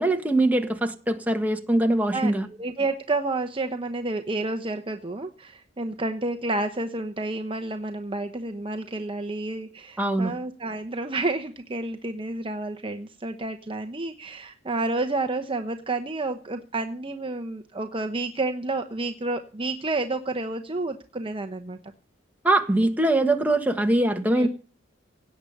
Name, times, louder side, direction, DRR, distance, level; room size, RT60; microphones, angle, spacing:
voice 1, 0.0-2.5 10.0-10.3 22.4-24.5, right 1 dB, 10° right, 4 dB, 1.6 m, -22 dB
voice 2, 2.1-21.8 24.4-24.5, right 2 dB, 25° right, 6 dB, 0.9 m, -30 dB
17.5 x 8.5 x 6.6 m, 0.39 s
head